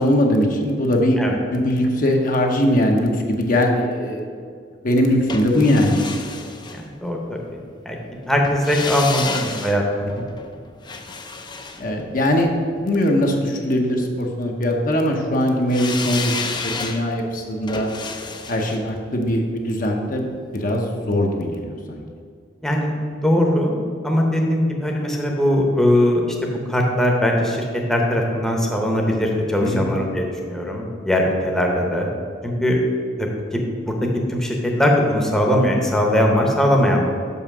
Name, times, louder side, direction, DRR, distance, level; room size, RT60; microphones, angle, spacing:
voice 1, 0.0-4.3 4.8-6.2 10.2-10.3 11.8-12.5 12.8-16.3 16.6-17.9 18.5-20.3 20.5-22.0 29.6-29.9, left 1 dB, 50° left, 2 dB, 0.8 m, -20 dB
sound 1, 5.3-7.4 8.4-12.7 15.7-20.7 21.0-21.1, left 4 dB, 25° left, 0.5 m, -32 dB
voice 2, 6.8-7.2 7.8-8.0 8.2-10.1 16.7-16.8 22.6-23.8 24.0-27.6 27.9-32.1 32.4-32.8 33.2-33.9 34.3-37.1, left 1 dB, 5° left, -1 dB, 0.9 m, -20 dB
5.6 x 5.5 x 6.0 m, 2.1 s
head